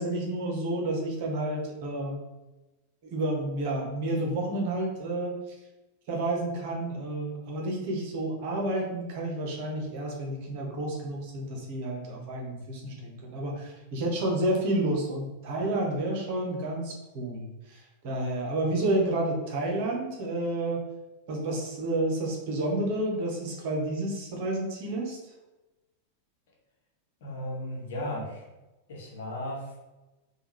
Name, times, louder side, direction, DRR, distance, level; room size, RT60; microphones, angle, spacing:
voice 1, 0.0-2.2 3.0-5.3 6.1-20.8 21.3-25.2, right 1 dB, 50° right, -1 dB, 0.9 m, -30 dB
voice 2, 27.2-28.5 28.9-29.8, left 1 dB, 55° left, -2 dB, 1.0 m, -35 dB
3.5 x 2.4 x 3.1 m, 1.1 s
figure-of-eight pair, 90°, 0 cm